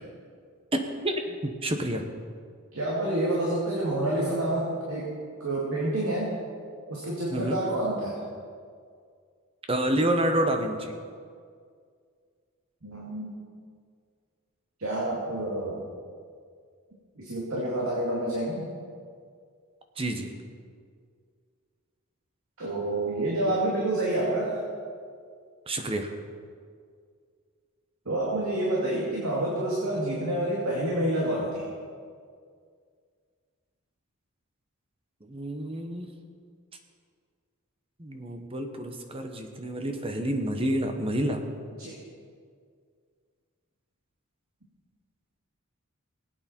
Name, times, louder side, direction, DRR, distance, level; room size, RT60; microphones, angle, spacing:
voice 1, 1.0-2.0 7.3-7.6 9.7-10.9 20.0-20.3 25.7-26.1 35.3-36.1 38.0-41.4, right 1 dB, 25° right, 5 dB, 1.1 m, -28 dB
voice 2, 2.7-5.1 5.4-6.3 6.9-8.2 12.8-13.4 14.8-15.8 17.2-18.7 22.6-24.6 28.1-31.7 41.8-42.0, right 1 dB, 70° right, -5 dB, 2.3 m, -28 dB
20.0 x 8.7 x 4.4 m, 2.1 s
head